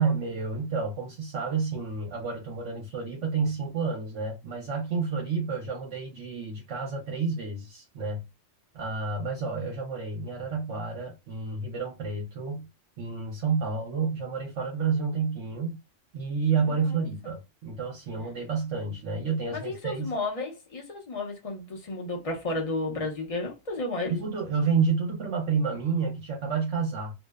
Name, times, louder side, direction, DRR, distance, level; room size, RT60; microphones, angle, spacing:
voice 1, 0.0-8.2 8.7-12.7 13.0-15.8 16.1-20.1 24.1-27.1, right 5 dB, 70° right, 1.0 m, -30 dB
voice 2, 16.6-17.0 19.5-24.1, left 2 dB, 35° left, 0.6 m, -32 dB
2.6 x 2.0 x 2.3 m
omnidirectional pair, 1.3 m